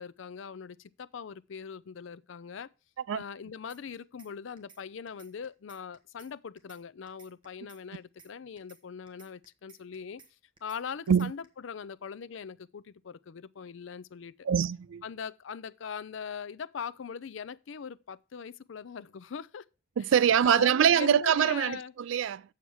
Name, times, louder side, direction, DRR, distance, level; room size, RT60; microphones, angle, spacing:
voice 1, 0.0-2.7 3.1-10.2 10.6-14.5 15.0-19.7 20.0-20.1 20.4-21.9, left 6 dB, 65° left, 0.4 m, -41 dB
sound 1, 3.7-4.3 4.6-4.8 5.1-6.3 6.6-6.8 7.1-8.3 8.6-8.8 9.1-10.3 10.6-10.8 11.1-11.5, right 5 dB, 25° right, 1.2 m, -56 dB
voice 2, 14.4-15.0 20.0-22.5, right 8 dB, 65° right, 0.3 m, -24 dB
7.3 x 7.2 x 4.6 m
head